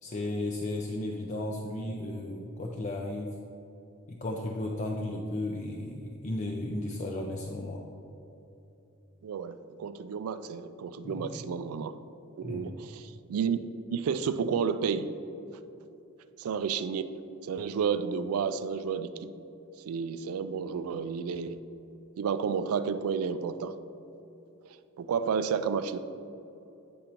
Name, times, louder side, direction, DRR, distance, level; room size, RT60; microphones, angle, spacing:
voice 1, 0.0-3.3 4.1-7.8 11.0-11.3 12.4-12.8 20.5-20.6, left 1 dB, 35° left, -1 dB, 0.4 m, -34 dB
voice 2, 9.2-12.0 12.4-13.6 13.9-15.1 16.4-17.0 17.5-19.3 19.9-21.6 22.2-23.7 25.0-26.0, right 6 dB, 90° right, 12 dB, 0.3 m, -31 dB
8.5 x 5.2 x 2.9 m, 2.9 s
head